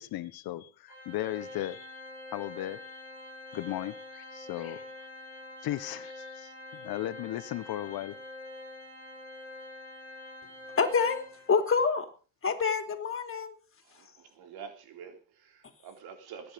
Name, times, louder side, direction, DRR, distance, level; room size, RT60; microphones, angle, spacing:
voice 1, 0.0-1.9 2.3-2.9 3.5-4.9 5.6-8.2, left 14 dB, 60° left, 1.3 m, -36 dB
Organ, 0.9-11.6, left 2 dB, 30° right, 6.7 m, -45 dB
voice 2, 10.8-11.2 11.5-12.1 12.4-13.5, left 5 dB, 30° left, 3.4 m, -26 dB
voice 3, 13.9-16.5, right 7 dB, 65° right, 3.8 m, -47 dB
20.0 x 10.5 x 5.3 m
supercardioid pair, 90°, 41 cm